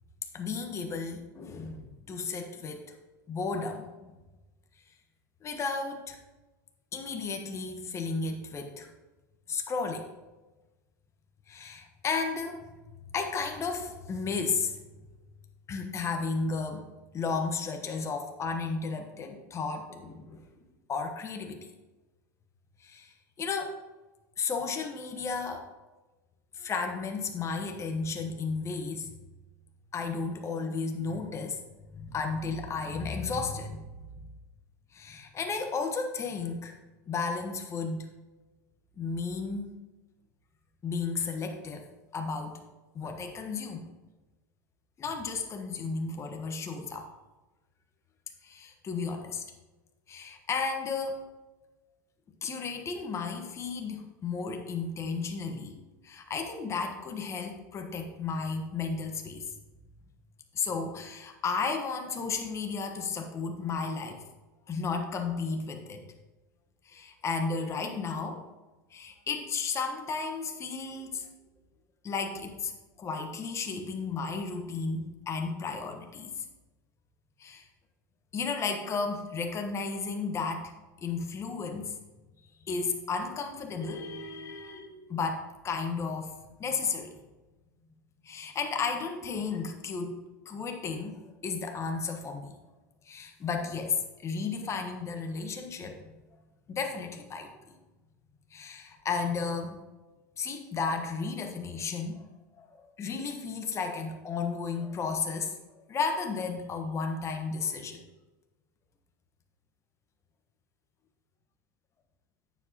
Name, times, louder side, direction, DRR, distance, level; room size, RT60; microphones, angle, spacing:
voice 1, 0.3-2.8 3.3-4.1 5.4-6.2 6.9-8.9 9.5-10.1 11.5-12.7 13.1-14.8 15.7-16.9 17.1-20.4 20.9-21.6 22.8-23.7 24.4-25.7 26.5-29.2 29.9-31.6 31.9-34.2 34.9-36.8 37.1-38.1 39.0-39.7 40.8-41.9 42.1-42.6 42.9-43.9 45.0-47.1 48.4-49.4 50.1-51.2 52.4-59.4 60.5-64.2 64.7-66.0 66.8-68.4 68.9-71.3 72.0-72.7 73.0-76.4 77.4-77.7 78.3-80.7 81.0-81.9 82.6-86.3 86.6-87.2 88.2-90.1 90.4-92.5 93.0-96.0 96.7-97.5 98.5-99.8 100.4-102.3 102.6-108.0, left 4 dB, 30° left, 4 dB, 1.3 m, -33 dB
9.4 x 7.4 x 3.0 m, 1.1 s
hypercardioid pair, 95°, 10 cm